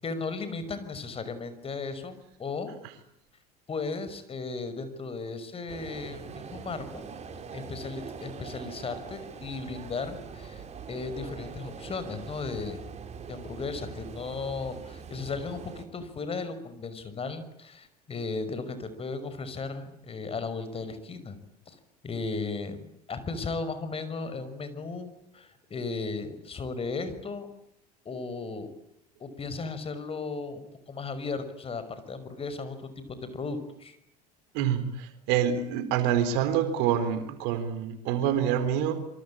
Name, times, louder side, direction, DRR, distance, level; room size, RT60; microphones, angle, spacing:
voice 1, 0.0-2.7 3.7-7.0 7.5-10.6 10.9-12.8 13.3-21.4 21.7-21.8 22.0-22.8 23.1-27.5 28.0-28.7 29.2-34.0, left 4 dB, 30° left, 12 dB, 5.9 m, -36 dB
sound 1, 5.7-15.8, right 6 dB, 35° right, 4.9 m, -43 dB
voice 2, 34.5-39.0, right 9 dB, 60° right, 11 dB, 4.0 m, -26 dB
27.0 x 25.0 x 8.8 m, 0.75 s
figure-of-eight pair, 70°, 20 cm